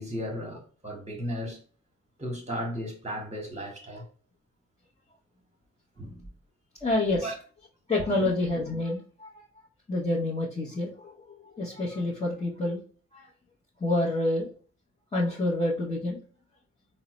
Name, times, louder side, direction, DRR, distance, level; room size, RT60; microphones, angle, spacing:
voice 1, 0.0-1.6 2.2-4.1 6.0-6.2 7.2-7.3 8.1-8.3, equal, 25° right, 1.2 m, -35 dB
voice 2, 6.8-7.3 7.9-9.5 9.9-12.8 13.1-13.3 13.8-14.5 15.1-16.2, left 2 dB, 20° left, 0.9 m, -28 dB
3.7 x 2.1 x 2.9 m
cardioid pair, 80°, 29 cm